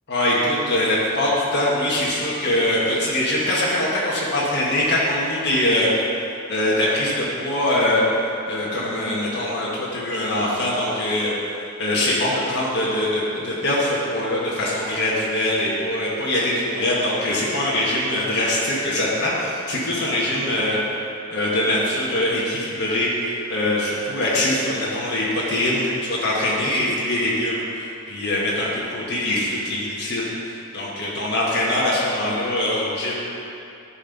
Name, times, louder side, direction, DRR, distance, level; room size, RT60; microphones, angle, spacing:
voice 1, 0.1-5.9 6.5-8.0 8.5-11.3 11.8-20.8 21.3-30.2 30.7-33.1, left 1 dB, 55° left, -6 dB, 1.6 m, -23 dB
11.5 x 4.4 x 5.3 m, 2.6 s
head